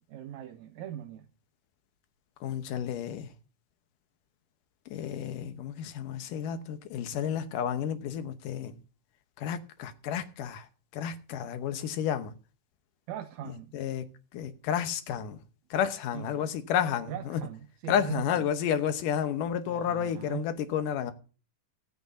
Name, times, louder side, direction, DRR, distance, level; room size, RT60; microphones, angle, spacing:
voice 1, 0.1-1.3 13.1-13.7 16.1-16.5 17.1-18.3 19.7-20.5, right 10 dB, 75° right, 1.8 m, -39 dB
voice 2, 2.4-3.3 4.9-8.8 9.4-10.7 10.9-12.3 13.4-14.0 14.3-15.4 15.7-17.4 17.9-21.1, left 9 dB, 90° left, 2.6 m, -31 dB
24.5 x 9.5 x 2.7 m
omnidirectional pair, 3.7 m